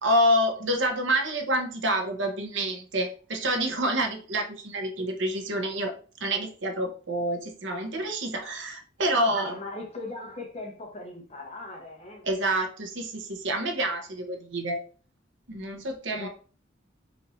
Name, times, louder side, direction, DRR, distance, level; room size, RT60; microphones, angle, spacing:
voice 1, 0.0-5.9 6.2-9.6 12.2-14.8 15.5-16.3, right 1 dB, 75° right, 4 dB, 1.0 m, -27 dB
voice 2, 9.0-12.2 16.1-16.3, left 2 dB, 35° left, 2 dB, 1.1 m, -39 dB
4.2 x 2.7 x 4.2 m, 0.39 s
head